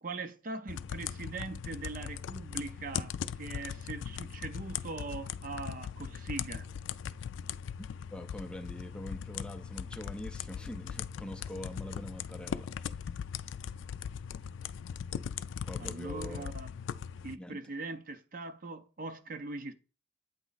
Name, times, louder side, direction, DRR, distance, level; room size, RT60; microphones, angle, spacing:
voice 1, 0.0-6.7 15.8-16.7 17.2-19.7, right 3 dB, 45° right, 0.6 m, -41 dB
sound 1, 0.7-17.3, left 8 dB, 80° left, 0.3 m, -39 dB
voice 2, 8.1-13.0 15.6-16.5 17.4-17.6, left 1 dB, 5° left, 0.4 m, -44 dB
8.2 x 3.0 x 4.0 m
head